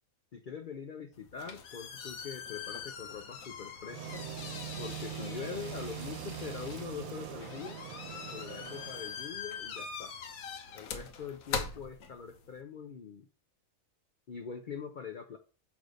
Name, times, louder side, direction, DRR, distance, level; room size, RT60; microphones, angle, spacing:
voice 1, 0.3-4.3 4.8-7.8 8.3-10.1 10.7-13.3 14.3-15.4, left 6 dB, 55° left, 6 dB, 0.6 m, -43 dB
sound 1, 1.1-12.6, left 6 dB, 80° left, 1.3 m, -43 dB
sound 2, 3.9-9.2, right 9 dB, 75° right, 1.3 m, -42 dB
6.5 x 3.5 x 5.1 m, 0.35 s
omnidirectional pair, 1.5 m